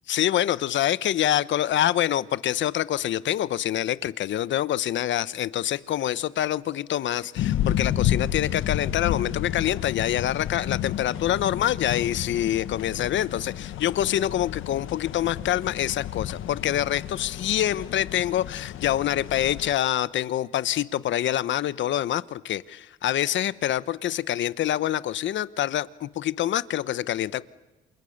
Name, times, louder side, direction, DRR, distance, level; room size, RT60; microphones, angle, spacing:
voice 1, 0.1-27.4, left 12 dB, 70° left, 17 dB, 1.0 m, -26 dB
sound 1, 7.4-19.7, left 11 dB, 85° left, 1.5 m, -31 dB
28.5 x 27.5 x 6.6 m, 1.1 s
cardioid pair, 90°, 20 cm